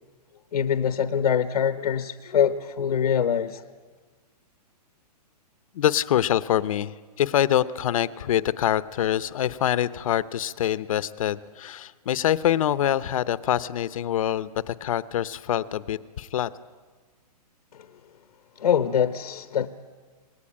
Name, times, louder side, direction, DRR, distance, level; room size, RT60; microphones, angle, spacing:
voice 1, 0.5-3.6 18.6-19.7, left 8 dB, 85° left, 1.2 m, -24 dB
voice 2, 5.7-16.5, left 11 dB, 55° left, 0.9 m, -25 dB
27.0 x 19.0 x 8.7 m
hypercardioid pair, 165°, 20 cm